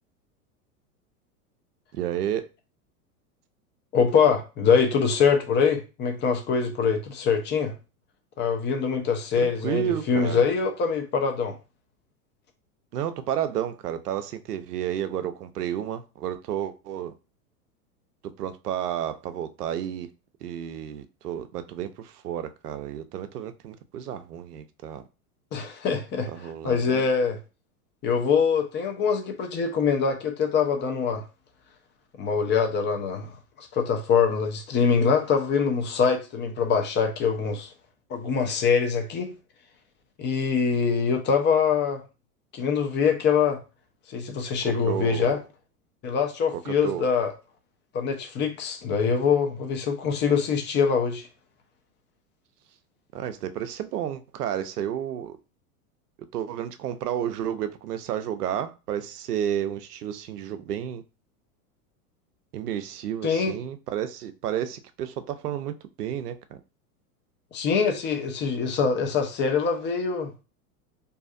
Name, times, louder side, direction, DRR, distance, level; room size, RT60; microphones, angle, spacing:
voice 1, 1.9-2.5 9.4-10.4 12.9-17.1 18.4-20.1 20.4-25.0 26.3-27.1 44.6-45.4 46.5-47.1 53.1-55.4 56.3-61.0 62.5-66.6, right 10 dB, 85° right, 0.5 m, -31 dB
voice 2, 3.9-7.7 8.4-11.6 25.5-27.4 28.0-31.2 32.2-37.7 38.1-39.3 40.2-42.0 42.5-43.6 44.1-45.4 46.0-47.3 47.9-51.3 63.2-63.6 67.5-70.3, left 6 dB, 25° left, 0.6 m, -24 dB
2.6 x 2.4 x 2.5 m
hypercardioid pair, 95°, 45 cm